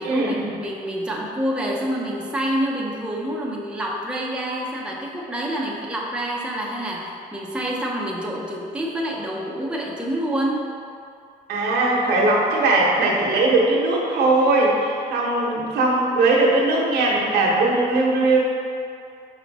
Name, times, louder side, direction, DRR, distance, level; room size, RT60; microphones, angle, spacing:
voice 1, 0.0-10.7, right 1 dB, 5° right, -3 dB, 0.8 m, -27 dB
voice 2, 11.5-18.4, right 2 dB, 70° right, -3 dB, 1.3 m, -19 dB
5.6 x 4.6 x 4.1 m, 2.5 s
cardioid pair, 110°, 17 cm